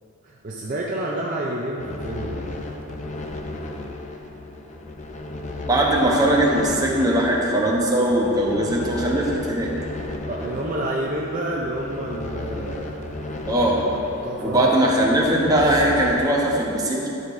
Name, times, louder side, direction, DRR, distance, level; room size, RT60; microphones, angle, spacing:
voice 1, 0.2-2.4 10.3-13.6 14.2-14.7, right 1 dB, 35° right, -3 dB, 0.5 m, -29 dB
sound 1, 1.8-16.3, left 2 dB, 35° left, 0.5 m, -34 dB
voice 2, 5.7-9.7 13.5-13.8 14.4-17.1, right 1 dB, 15° right, -3 dB, 0.9 m, -20 dB
12.5 x 6.6 x 2.6 m, 3.0 s
head